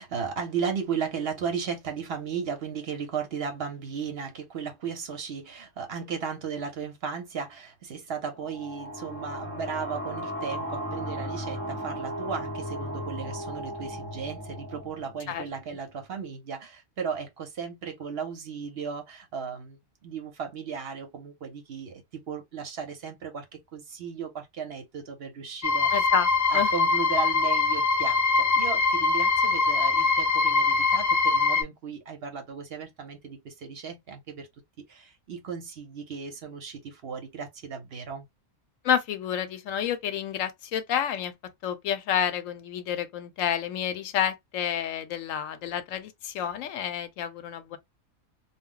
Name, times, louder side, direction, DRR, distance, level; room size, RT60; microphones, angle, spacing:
voice 1, 0.0-26.1 26.5-34.5 34.9-38.3, right 6 dB, 55° right, 0.9 m, -35 dB
sound 1, 8.3-15.7, equal, 15° left, 0.6 m, -36 dB
sound 2, 25.6-31.6, left 4 dB, 60° left, 0.4 m, -23 dB
voice 2, 25.9-26.7 38.8-41.3 41.6-47.8, left 9 dB, 85° left, 1.0 m, -29 dB
2.3 x 2.0 x 3.6 m
omnidirectional pair, 1.3 m